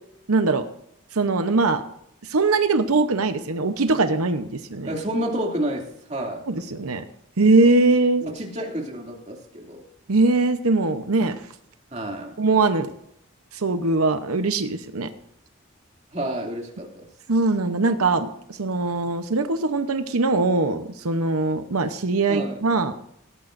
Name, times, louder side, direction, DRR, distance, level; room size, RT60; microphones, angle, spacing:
voice 1, 0.3-0.7 1.1-1.8 2.2-4.9 6.5-7.0 7.4-8.2 10.1-11.4 12.4-12.9 13.5-15.1 17.3-22.9, right 3 dB, 90° right, 8 dB, 0.9 m, -21 dB
voice 2, 4.8-6.5 8.2-9.8 11.9-12.4 16.1-17.1 22.3-22.6, right 1 dB, 30° right, 0 dB, 2.6 m, -29 dB
17.5 x 13.0 x 2.6 m, 0.75 s
head